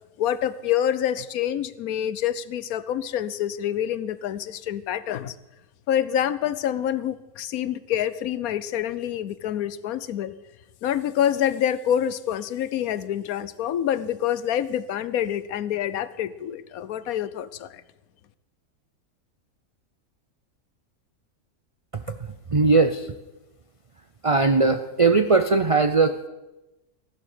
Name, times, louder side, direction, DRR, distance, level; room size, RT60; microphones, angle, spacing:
voice 1, 0.2-5.3 5.9-10.3 10.8-17.8, left 10 dB, 70° left, 15 dB, 1.2 m, -27 dB
voice 2, 22.5-23.1 24.2-26.3, right 3 dB, 55° right, 9 dB, 0.3 m, -20 dB
16.0 x 11.0 x 6.7 m, 1.0 s
omnidirectional pair, 1.6 m